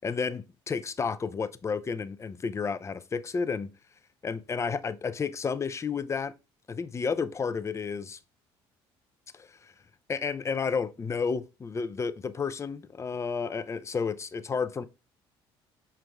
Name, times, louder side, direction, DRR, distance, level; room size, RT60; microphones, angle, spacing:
voice 1, 0.0-3.7 4.2-6.3 6.7-8.2 9.3-9.7 10.1-14.8, left 5 dB, 25° left, 0.4 m, -31 dB
5.0 x 3.2 x 2.3 m
hypercardioid pair, 65°, 12 cm